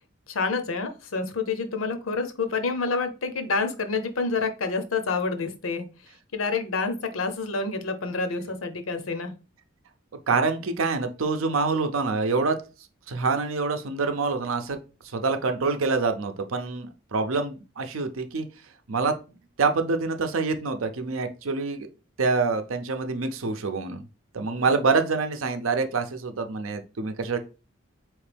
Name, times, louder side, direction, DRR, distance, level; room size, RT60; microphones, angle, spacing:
voice 1, 0.3-5.9 6.3-9.3 24.5-24.6, left 4 dB, 90° left, 8 dB, 0.7 m, -28 dB
voice 2, 10.3-12.6 13.1-14.8 15.1-18.5 18.9-19.1 19.6-21.9 22.2-24.0 24.3-27.4, right 4 dB, 85° right, 8 dB, 0.6 m, -26 dB
4.4 x 3.2 x 3.4 m, 0.31 s
head